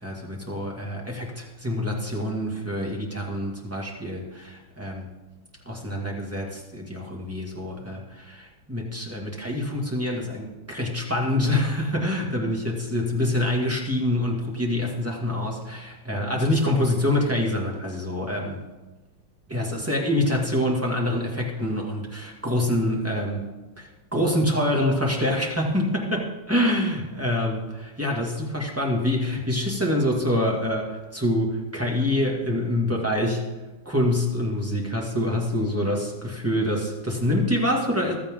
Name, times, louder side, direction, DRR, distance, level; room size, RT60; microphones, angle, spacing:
voice 1, 0.0-5.1 5.7-18.6 19.5-23.4 23.8-33.4 33.9-38.1, left 1 dB, 10° right, -1 dB, 2.0 m, -26 dB
15.0 x 13.0 x 3.8 m, 1.2 s
omnidirectional pair, 2.0 m